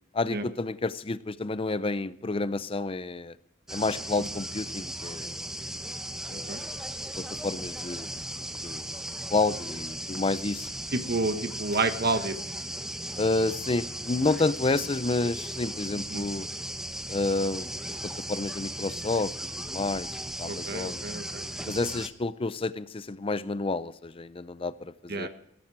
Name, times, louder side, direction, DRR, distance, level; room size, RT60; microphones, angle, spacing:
voice 1, 0.1-3.4 3.7-5.4 6.3-6.5 7.2-8.2 8.6-9.0 9.3-10.7 13.2-16.5 17.1-21.0 21.7-25.3, left 3 dB, 30° left, 15 dB, 0.5 m, -30 dB
sound 1, 3.7-22.1, right 1 dB, 5° right, 1.1 m, -37 dB
voice 2, 10.9-12.4 16.1-16.2 20.5-21.4 25.1-25.3, right 3 dB, 55° right, 9 dB, 1.2 m, -29 dB
16.0 x 13.5 x 4.7 m, 0.74 s
head